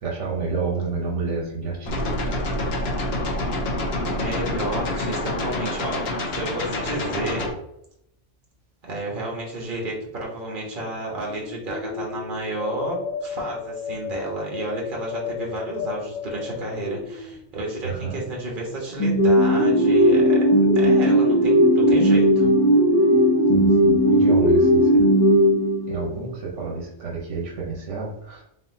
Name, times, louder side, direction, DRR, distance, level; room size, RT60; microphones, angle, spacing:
voice 1, 0.0-2.6 17.8-18.2 23.5-25.0 25.9-28.4, right 4 dB, 75° right, -3 dB, 1.2 m, -30 dB
sound 1, 1.8-7.5, left 1 dB, 60° left, 1.0 m, -27 dB
voice 2, 4.0-7.5 8.8-20.4 20.7-22.5, right 1 dB, 45° right, -2 dB, 1.3 m, -31 dB
sound 2, 11.2-17.7, left 6 dB, 90° left, 1.0 m, -34 dB
sound 3, 19.0-26.2, equal, 25° left, 0.9 m, -17 dB
4.1 x 3.7 x 2.7 m, 0.79 s
omnidirectional pair, 1.3 m